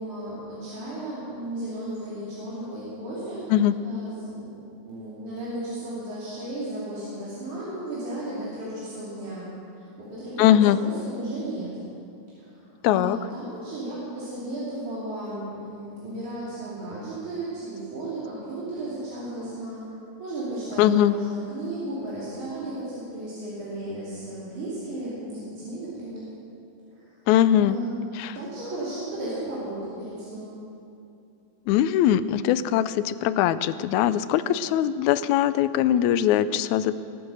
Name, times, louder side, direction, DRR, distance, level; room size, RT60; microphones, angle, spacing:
voice 1, 0.0-3.5 3.8-4.5 4.9-9.5 9.8-11.7 12.4-19.8 20.2-26.2 27.0-27.1 27.6-27.9 28.3-30.6, right 1 dB, 85° right, -9 dB, 4.6 m, -34 dB
voice 2, 10.4-10.8 12.8-13.2 20.8-21.1 27.3-27.8 28.1-28.4 31.7-37.0, left 11 dB, 85° left, 14 dB, 1.9 m, -21 dB
21.5 x 8.9 x 6.5 m, 2.7 s
omnidirectional pair, 3.4 m